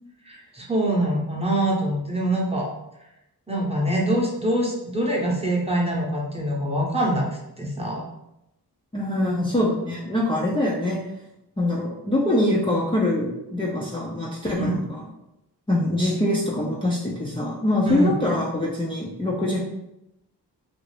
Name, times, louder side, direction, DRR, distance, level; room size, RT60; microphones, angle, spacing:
voice 1, 0.3-2.7 3.5-7.3 7.6-8.0 14.6-14.7 17.9-18.1, right 1 dB, 15° right, -3 dB, 0.9 m, -24 dB
voice 2, 8.9-11.0 11.6-15.0 15.7-19.6, left 1 dB, 15° left, -6 dB, 0.5 m, -24 dB
2.5 x 2.5 x 3.2 m, 0.89 s
cardioid pair, 50°, 41 cm